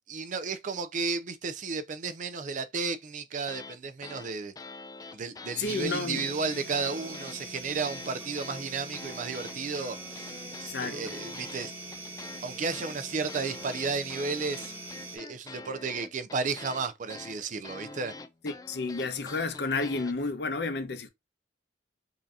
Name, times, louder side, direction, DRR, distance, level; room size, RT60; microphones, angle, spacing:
voice 1, 0.1-4.5 5.1-11.7 12.4-14.7 15.1-18.1, right 4 dB, 45° right, 0.5 m, -33 dB
sound 1, 3.4-3.8 4.0-8.1 8.4-20.1, left 3 dB, 20° left, 0.3 m, -45 dB
voice 2, 5.6-6.3 10.7-11.0 18.4-21.1, left 3 dB, 65° left, 0.7 m, -31 dB
sound 2, 5.6-15.2, right 2 dB, 10° right, 1.3 m, -42 dB
5.4 x 2.7 x 2.4 m
head